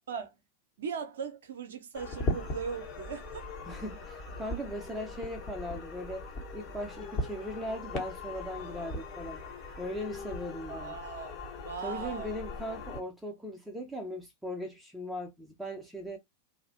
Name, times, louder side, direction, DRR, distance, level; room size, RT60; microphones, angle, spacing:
voice 1, 0.8-3.5 10.7-11.3 11.6-12.4, right 6 dB, 60° right, 0.5 m, -39 dB
sound 1, 1.9-13.0, left 2 dB, 35° left, 0.9 m, -39 dB
voice 2, 3.7-9.4 9.8-11.0 11.8-16.2, equal, 5° right, 0.5 m, -39 dB
2.6 x 2.0 x 2.6 m
figure-of-eight pair, 90°, 0 cm